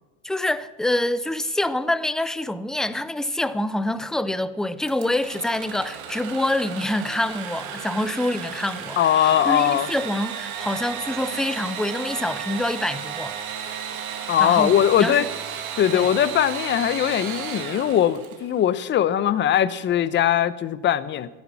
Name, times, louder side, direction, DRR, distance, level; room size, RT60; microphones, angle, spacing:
voice 1, 0.2-13.4 14.4-15.3 15.9-16.1, left 1 dB, ahead, 0.4 m, -26 dB
Engine / Sawing, 4.8-18.6, right 8 dB, 85° right, 2.5 m, -34 dB
voice 2, 9.0-9.9 14.3-15.3 15.8-21.3, left 10 dB, 25° left, 0.9 m, -20 dB
16.0 x 14.0 x 5.8 m
supercardioid pair, 125°, 41 cm